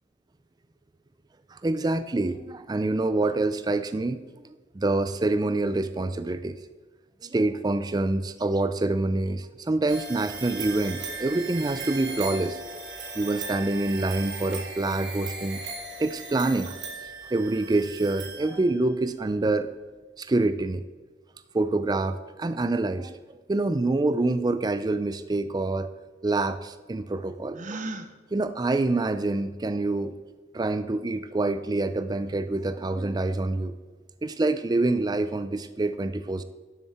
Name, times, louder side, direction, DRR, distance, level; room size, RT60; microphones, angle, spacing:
voice 1, 1.5-4.2 4.7-6.6 7.2-12.6 13.2-15.6 16.0-16.8 17.3-19.7 20.2-20.8 21.5-23.2 23.5-25.9 26.2-27.9 28.3-30.1 30.5-33.7 34.2-36.4, right 2 dB, 20° right, 11 dB, 0.4 m, -26 dB
sound 1, 9.9-18.9, right 3 dB, 75° right, 2.6 m, -38 dB
Gasp, 27.5-28.1, right 2 dB, 45° right, 0.8 m, -35 dB
12.5 x 7.2 x 4.3 m, 1.3 s
head